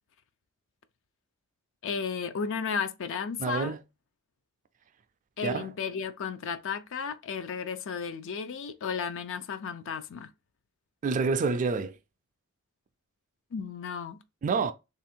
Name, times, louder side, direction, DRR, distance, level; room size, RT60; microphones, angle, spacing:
voice 1, 1.8-3.7 5.4-10.3 13.5-14.2, left 6 dB, 60° left, 0.4 m, -34 dB
voice 2, 3.4-3.8 5.4-5.7 11.0-12.0 14.4-14.7, right 4 dB, 35° right, 0.3 m, -27 dB
3.4 x 2.4 x 4.3 m
head